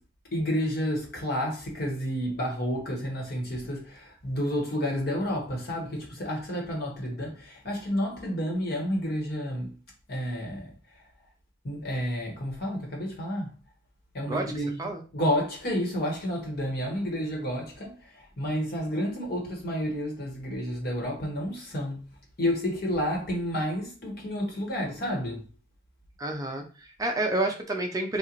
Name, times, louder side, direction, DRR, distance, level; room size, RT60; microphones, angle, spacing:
voice 1, 0.3-9.7 10.1-10.7 11.6-13.5 14.1-14.8 15.1-22.1 22.4-25.4, equal, 60° left, 1.3 m, -30 dB
voice 2, 26.2-28.2, right 2 dB, 20° right, 0.5 m, -29 dB
3.8 x 2.4 x 3.0 m
head